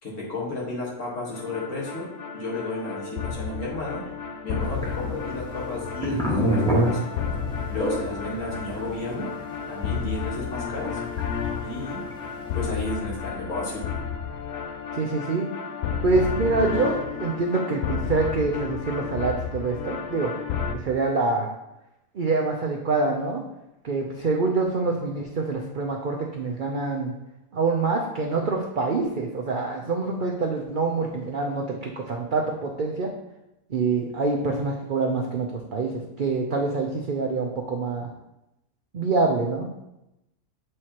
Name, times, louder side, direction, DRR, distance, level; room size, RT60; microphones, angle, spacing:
voice 1, 0.0-2.1 2.3-4.0 4.4-7.0 7.7-9.3 9.7-10.9 11.6-12.0 12.5-13.9, left 2 dB, 50° left, -4 dB, 1.9 m, -32 dB
sound 1, 1.3-20.8, left 6 dB, 85° left, 0.5 m, -32 dB
sound 2, 4.7-12.7, right 1 dB, 5° left, 1.0 m, -26 dB
voice 2, 14.9-15.5 16.0-20.3 20.7-21.5 22.1-23.4 23.8-27.1 27.5-33.1 33.7-35.9 36.2-38.1 38.9-39.7, right 3 dB, 60° right, 0 dB, 0.5 m, -25 dB
7.4 x 4.8 x 2.9 m, 0.89 s
omnidirectional pair, 1.7 m